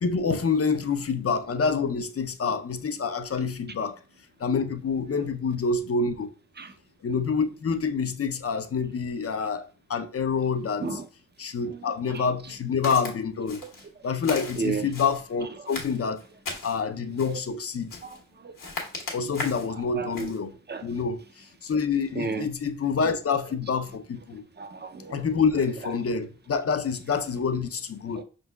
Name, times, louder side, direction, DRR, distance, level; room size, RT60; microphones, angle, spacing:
voice 1, 0.0-4.0 4.4-6.3 7.0-10.9 11.4-13.6 14.0-16.2 16.6-18.0 19.1-20.5 20.8-24.4 25.1-28.2, left 5 dB, 45° left, 0.5 m, -27 dB
voice 2, 11.7-12.3 13.6-13.7 14.6-14.9 15.6-15.7 17.3-17.4 18.0-18.7 19.7-20.3 20.7-21.0 22.2-22.5 24.6-25.3 28.1-28.2, right 4 dB, 35° right, 0.5 m, -34 dB
Walk footsteps, 12.8-13.1 13.5-13.9 14.2-15.2 15.7-16.8 17.2-17.5 17.9-18.2 18.6-19.7 20.1-20.4, left 3 dB, 80° left, 1.3 m, -37 dB
5.3 x 3.8 x 2.2 m
wide cardioid pair, 75°, 32 cm